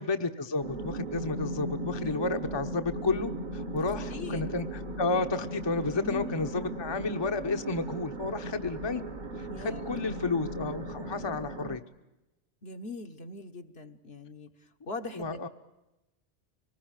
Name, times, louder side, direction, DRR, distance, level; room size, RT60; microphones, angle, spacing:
voice 1, 0.0-9.0 9.4-11.8 15.1-15.5, left 3 dB, 25° left, 6 dB, 1.0 m, -31 dB
sound 1, 0.6-11.8, right 1 dB, 45° right, 1.3 m, -37 dB
voice 2, 3.8-4.5 6.0-6.4 9.5-10.0 12.6-15.5, left 3 dB, 60° left, 6 dB, 1.5 m, -41 dB
25.0 x 19.5 x 9.0 m, 0.99 s
omnidirectional pair, 1.2 m